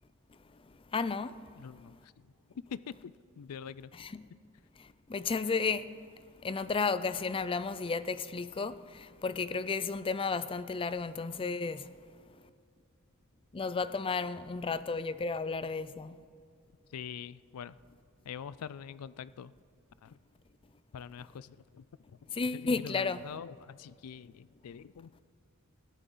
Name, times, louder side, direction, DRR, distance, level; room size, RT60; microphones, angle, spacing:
voice 1, 0.9-1.4 3.9-4.3 4.8-5.9 6.4-11.9 13.5-16.2 22.3-23.2, left 4 dB, 25° left, 0.4 m, -33 dB
voice 2, 1.6-2.3 2.7-4.1 16.9-17.8 18.2-19.5 20.0-20.2 20.9-22.2 22.5-25.2, left 7 dB, 85° left, 0.4 m, -45 dB
20.0 x 14.0 x 3.9 m
head